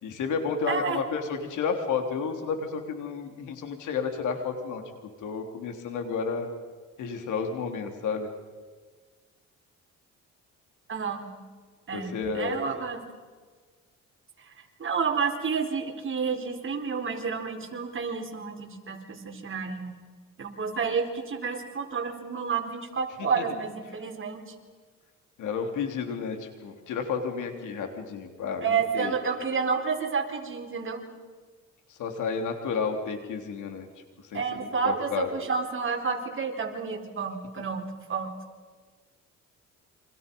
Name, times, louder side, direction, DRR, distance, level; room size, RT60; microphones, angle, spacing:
voice 1, 0.0-4.8 5.2-6.5 7.0-8.3 11.9-12.6 23.2-23.4 25.4-29.1 31.9-33.9 34.3-35.3, left 5 dB, 80° left, 4 dB, 3.7 m, -31 dB
voice 2, 0.7-1.0 10.9-11.3 11.9-13.0 14.8-19.9 20.4-24.4 28.6-31.0 34.3-37.8 38.1-38.4, right 5 dB, 45° right, 2 dB, 4.3 m, -30 dB
29.5 x 26.0 x 5.5 m, 1.5 s
cardioid pair, 90°, 30 cm